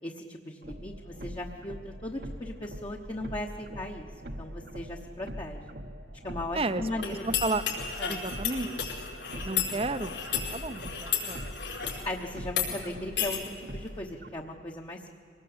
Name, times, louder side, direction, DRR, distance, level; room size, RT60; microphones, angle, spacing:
voice 1, 0.0-5.6 6.2-7.2 8.0-8.2 9.3-9.6 12.0-15.1, left 1 dB, 25° left, 0 dB, 1.1 m, -38 dB
sound 1, 0.6-14.3, equal, 55° right, 1.2 m, -43 dB
sound 2, 7.0-12.0 12.5-12.7 13.2-13.4, left 8 dB, 80° left, 4.9 m, -33 dB
voice 2, 8.1-8.7 9.4-11.4, right 2 dB, 30° right, 13 dB, 0.8 m, -32 dB
24.5 x 18.5 x 8.7 m, 2.8 s
head